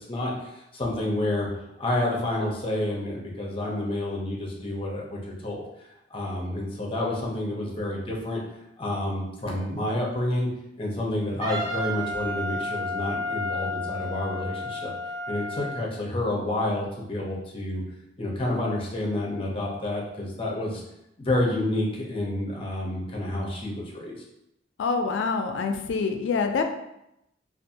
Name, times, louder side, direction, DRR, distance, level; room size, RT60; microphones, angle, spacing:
voice 1, 0.1-1.5 1.8-5.6 6.1-8.4 8.8-10.5 10.8-14.9 15.3-17.8 18.2-20.8 21.2-24.2, left 1 dB, 30° left, -2 dB, 0.6 m, -29 dB
Wind instrument woodwind instrument, 11.4-15.9, left 1 dB, 20° right, 0.4 m, -31 dB
voice 2, 24.8-26.6, left 4 dB, 80° left, 6 dB, 0.3 m, -26 dB
2.5 x 2.3 x 2.7 m, 0.84 s
head